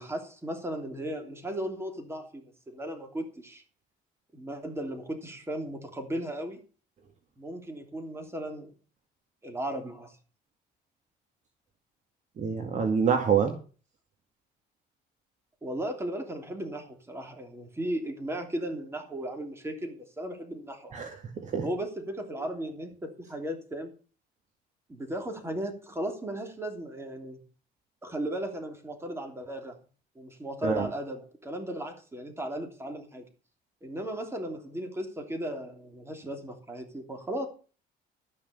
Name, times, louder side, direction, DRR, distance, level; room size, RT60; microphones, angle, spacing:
voice 1, 0.0-3.6 4.3-6.6 7.4-8.7 9.4-10.2 15.6-21.1 21.6-23.9 24.9-27.4 28.0-29.8 30.1-33.2 33.8-37.5, right 1 dB, 15° right, 4 dB, 3.2 m, -36 dB
voice 2, 12.4-13.5 20.9-21.6 30.6-30.9, right 6 dB, 45° right, 4 dB, 2.1 m, -26 dB
13.5 x 6.3 x 7.0 m, 0.37 s
cardioid pair, 110°, 17 cm